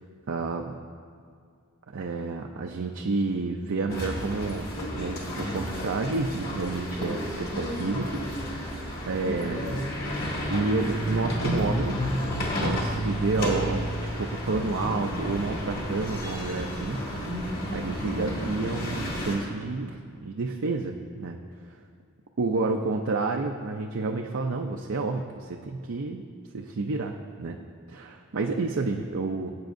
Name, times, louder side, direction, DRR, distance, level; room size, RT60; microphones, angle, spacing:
voice 1, 0.3-0.8 1.9-8.8 9.1-9.8 10.5-12.1 12.6-17.4 17.7-21.4 22.4-26.2 26.5-27.6 27.9-29.5, right 3 dB, 60° right, 2 dB, 0.5 m, -30 dB
sound 1, 3.9-19.4, equal, 45° left, 2.1 m, -31 dB
18.0 x 8.3 x 2.6 m, 2.2 s
head